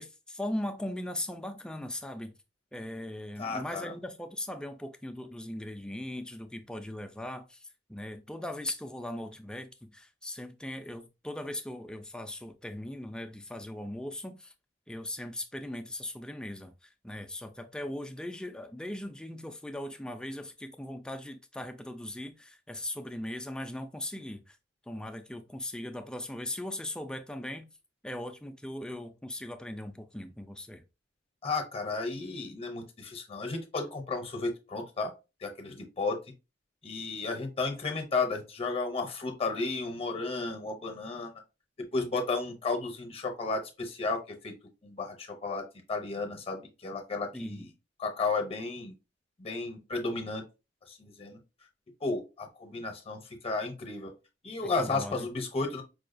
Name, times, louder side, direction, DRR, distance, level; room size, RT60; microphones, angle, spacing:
voice 1, 0.0-2.3 2.7-14.5 14.9-16.7 17.0-24.6 24.9-27.7 28.0-30.8 47.3-47.7 54.6-55.3, left 1 dB, 5° left, 0.3 m, -39 dB
voice 2, 3.4-3.9 31.4-35.1 35.4-36.2 36.8-41.3 41.8-44.5 44.8-47.7 48.0-48.9 49.4-50.4 50.9-51.4 52.0-54.1 54.4-55.8, left 3 dB, 30° left, 0.7 m, -33 dB
4.7 x 2.2 x 2.5 m
head